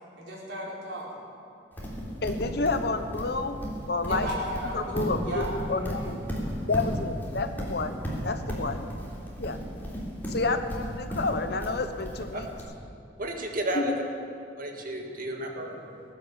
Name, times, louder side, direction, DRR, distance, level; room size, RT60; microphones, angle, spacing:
voice 1, 0.1-1.1 4.1-6.1, equal, 85° right, -5 dB, 4.6 m, -35 dB
Livestock farm animals working animals, 1.8-12.6, equal, 10° left, 3.3 m, -33 dB
voice 2, 2.2-4.3 4.7-6.2 6.7-8.0 8.2-8.9 9.4-9.6 10.3-12.5 13.7-14.0, left 3 dB, 65° left, 8 dB, 1.0 m, -30 dB
voice 3, 13.2-13.9 14.6-15.8, right 1 dB, 50° right, 2 dB, 1.7 m, -32 dB
19.0 x 9.8 x 7.3 m, 2.6 s
head